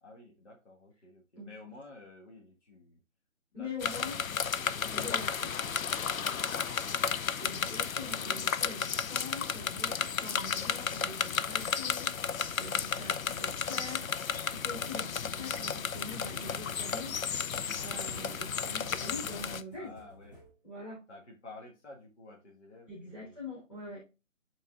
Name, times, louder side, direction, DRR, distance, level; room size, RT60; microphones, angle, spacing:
voice 1, 0.0-3.0 3.5-7.3 8.1-8.6 10.5-10.7 19.7-20.4 21.1-23.4 23.7-24.0, left 2 dB, 55° left, 0 dB, 1.8 m, -53 dB
voice 2, 3.5-4.2 4.9-5.5 7.4-14.0 14.5-17.3 17.8-19.9 20.6-21.0 22.9-24.0, left 2 dB, 15° left, -9 dB, 3.1 m, -44 dB
sound 1, 3.8-19.6, left 7 dB, 80° left, 0.5 m, -33 dB
sound 2, 12.5-20.5, equal, 30° left, 4.0 m, -55 dB
10.5 x 4.0 x 2.4 m, 0.30 s
figure-of-eight pair, 155°, 40 cm